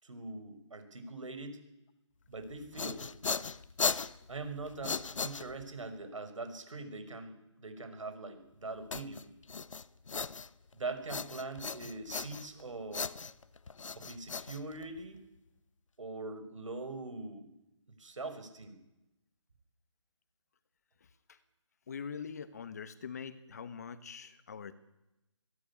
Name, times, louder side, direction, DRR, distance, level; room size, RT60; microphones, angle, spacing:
voice 1, 0.0-1.6 2.3-3.1 4.3-9.3 10.7-13.1 14.0-15.2 16.0-17.5 17.9-18.8, right 3 dB, 80° right, 9 dB, 5.8 m, -42 dB
sound 1, 2.5-5.9 8.9-10.7 11.1-12.6 12.9-15.2, left 5 dB, 90° left, 0.9 m, -37 dB
voice 2, 21.9-24.7, left 6 dB, 35° left, 13 dB, 1.3 m, -43 dB
23.0 x 17.0 x 8.6 m, 0.91 s
hypercardioid pair, 175°, 16 cm